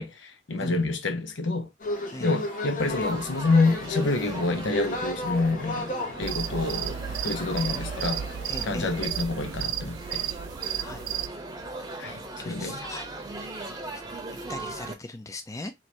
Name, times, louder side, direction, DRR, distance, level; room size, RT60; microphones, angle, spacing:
voice 1, 0.0-1.7 2.2-5.9 6.2-7.0 7.2-8.2 8.6-10.2 12.0-12.8, left 3 dB, 80° left, 0.8 m, -27 dB
sound 1, 1.8-9.0, left 2 dB, 45° left, 0.8 m, -34 dB
Laughter / Chatter / Crowd, 2.8-14.9, right 2 dB, 20° right, 0.8 m, -39 dB
sound 2, 6.2-11.3, right 10 dB, 85° right, 0.4 m, -33 dB
voice 2, 8.5-8.9 10.8-11.0 12.4-13.1 13.9-14.0 14.5-15.7, left 2 dB, 15° left, 0.4 m, -39 dB
3.0 x 2.8 x 4.5 m
head